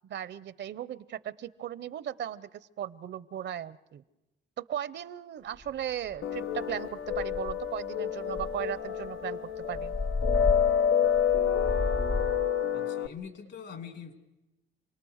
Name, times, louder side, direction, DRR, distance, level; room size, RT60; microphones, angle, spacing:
voice 1, 0.1-2.5 2.8-4.0 4.6-10.0, right 10 dB, 60° right, 17 dB, 0.7 m, -37 dB
sound 1, 5.6-5.7 6.1-6.4 6.7-6.8 7.1-7.8 8.3-12.5, left 3 dB, 20° left, 0.7 m, -33 dB
sound 2, 6.2-13.1, left 8 dB, 85° left, 0.8 m, -28 dB
voice 2, 12.7-14.1, left 7 dB, 65° left, 7 dB, 2.9 m, -43 dB
28.0 x 18.5 x 6.5 m, 0.96 s
cardioid pair, 90°, 20 cm